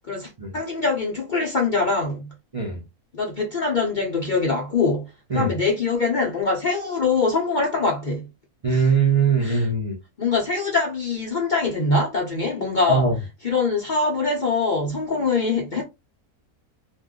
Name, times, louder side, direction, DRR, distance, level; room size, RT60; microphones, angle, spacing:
voice 1, 0.1-2.3 3.1-5.1 5.3-8.3 8.7-8.9 9.4-9.7 10.2-13.1 13.4-15.8, left 3 dB, 55° left, 0.5 m, -23 dB
voice 2, 8.6-10.0 12.9-13.2, right 4 dB, 60° right, 0.3 m, -21 dB
2.5 x 2.2 x 3.5 m
omnidirectional pair, 1.6 m